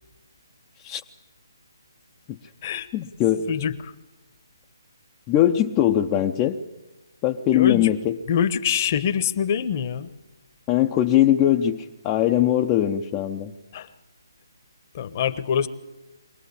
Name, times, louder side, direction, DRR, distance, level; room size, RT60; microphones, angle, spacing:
voice 1, 2.9-3.5 5.3-6.6 7.2-8.2 10.7-13.5, left 12 dB, 20° left, 2 dB, 0.7 m, -21 dB
voice 2, 3.5-3.9 7.5-7.9 8.3-10.1 13.7-13.9 14.9-15.7, left 8 dB, 35° left, 13 dB, 1.2 m, -24 dB
23.5 x 18.5 x 8.6 m, 1.1 s
figure-of-eight pair, 150°, 2 cm